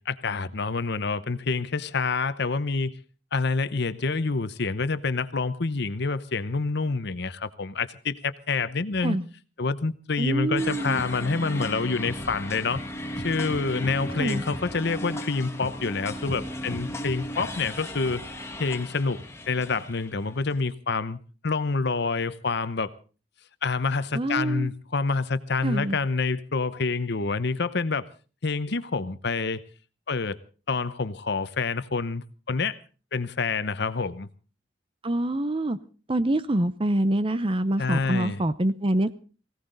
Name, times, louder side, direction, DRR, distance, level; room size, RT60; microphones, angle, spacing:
voice 1, 0.0-3.0 3.3-9.2 9.6-12.8 13.2-18.2 18.6-19.2 19.5-21.2 21.4-22.9 23.6-28.1 28.4-29.6 30.1-30.4 30.7-32.8 33.1-34.3 37.8-38.4, left 4 dB, 60° left, 0.9 m, -27 dB
voice 2, 10.2-11.0 14.2-14.4 24.1-24.7 25.6-26.0 35.0-35.8 36.1-39.2, right 1 dB, 30° right, 0.7 m, -25 dB
sound 1, 10.6-20.7, equal, 15° left, 1.7 m, -36 dB
19.0 x 17.0 x 3.9 m
head